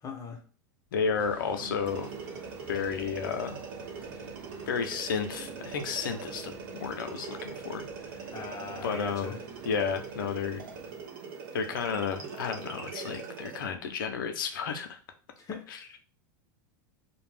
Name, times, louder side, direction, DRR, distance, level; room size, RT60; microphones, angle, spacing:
voice 1, 0.0-0.4 8.3-9.4 15.4-15.7, left 4 dB, 30° left, 0.6 m, -40 dB
voice 2, 0.9-2.1 2.7-3.6 4.7-7.8 8.8-9.4 9.6-10.6 11.5-15.0 15.7-16.0, left 6 dB, 80° left, 0.5 m, -32 dB
sound 1, 1.0-11.1, right 3 dB, 15° right, 0.9 m, -49 dB
sound 2, 1.9-13.7, right 5 dB, 70° right, 0.8 m, -42 dB
2.4 x 2.1 x 3.3 m
hypercardioid pair, 95°, 11 cm